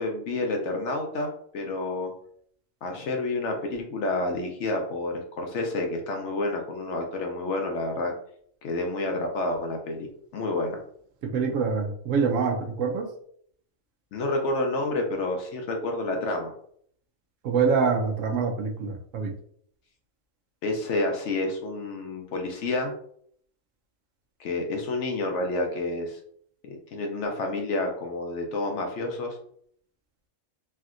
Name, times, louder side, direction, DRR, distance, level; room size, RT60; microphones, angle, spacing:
voice 1, 0.0-2.1 2.8-8.1 8.6-10.1 10.3-10.8 14.1-16.5 20.6-22.9 24.4-26.2 26.6-29.4, left 2 dB, 65° left, 2 dB, 0.8 m, -29 dB
voice 2, 11.2-13.1 17.4-19.3, right 5 dB, 70° right, 1 dB, 0.9 m, -25 dB
3.2 x 2.7 x 2.4 m, 0.63 s
omnidirectional pair, 1.4 m